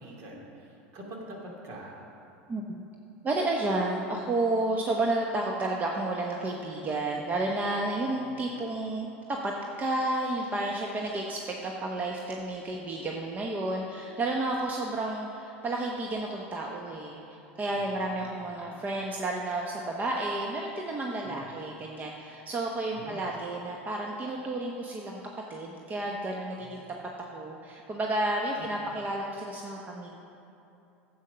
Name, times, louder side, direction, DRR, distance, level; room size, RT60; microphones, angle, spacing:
voice 1, 0.0-2.0 8.2-8.5 17.7-18.0 18.6-18.8 21.2-21.6 22.9-23.2 26.6-26.9 28.6-29.0, right 1 dB, 55° right, -2 dB, 2.7 m, -45 dB
voice 2, 2.5-2.9 3.2-9.5 9.8-25.2 25.5-26.8 27.3-30.1, right 2 dB, 25° right, 0 dB, 1.0 m, -31 dB
11.0 x 8.1 x 5.6 m, 2.9 s
hypercardioid pair, 95°, 6 cm